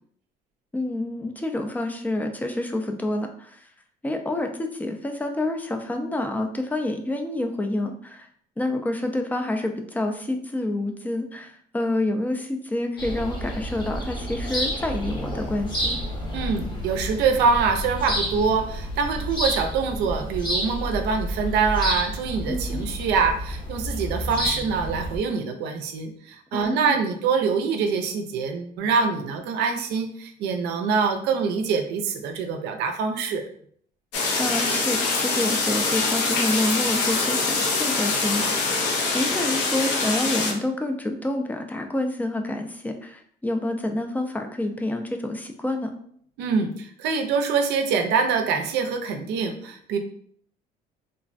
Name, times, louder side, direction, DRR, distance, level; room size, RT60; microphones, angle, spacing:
voice 1, 0.7-3.7 4.0-8.3 8.6-16.0 22.5-22.8 26.5-26.9 34.4-38.8 39.1-45.9, left 1 dB, 10° left, 4 dB, 0.3 m, -28 dB
sound 1, 13.0-25.2, equal, 25° left, 0.8 m, -30 dB
voice 2, 16.3-33.4 46.4-50.0, right 5 dB, 85° right, 4 dB, 0.4 m, -25 dB
sound 2, 34.1-40.5, left 3 dB, 85° left, 0.5 m, -24 dB
3.3 x 2.1 x 2.4 m, 0.62 s
cardioid pair, 110°, 17 cm